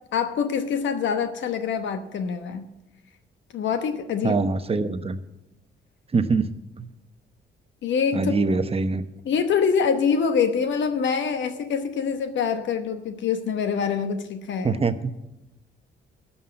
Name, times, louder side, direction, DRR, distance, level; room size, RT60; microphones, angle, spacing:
voice 1, 0.1-2.7 3.5-4.4 7.8-8.6 9.2-14.8, left 6 dB, 70° left, 8 dB, 1.0 m, -25 dB
voice 2, 4.2-5.2 6.1-6.5 6.8-6.9 8.1-9.0 14.6-15.1, right 4 dB, 30° right, 10 dB, 0.9 m, -23 dB
12.5 x 5.7 x 8.8 m, 0.94 s
cardioid pair, 90°, 20 cm